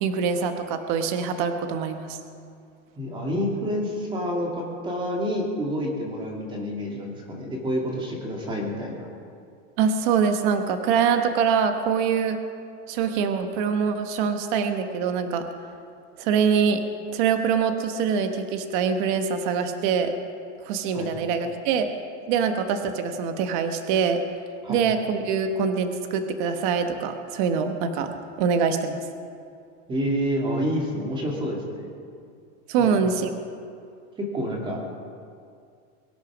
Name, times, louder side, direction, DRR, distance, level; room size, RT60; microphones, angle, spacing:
voice 1, 0.0-2.2 9.8-12.4 12.9-15.5 16.2-16.8 17.1-20.1 20.6-21.9 22.3-24.2 24.7-28.1 28.4-29.0 32.7-33.3, right 6 dB, 40° right, 7 dB, 1.1 m, -24 dB
voice 2, 3.0-9.1 20.9-21.1 24.6-24.8 29.9-31.9 32.8-33.0 34.2-34.8, equal, 15° right, 0 dB, 2.2 m, -28 dB
23.0 x 9.2 x 6.0 m, 2.3 s
supercardioid pair, 170°, 38 cm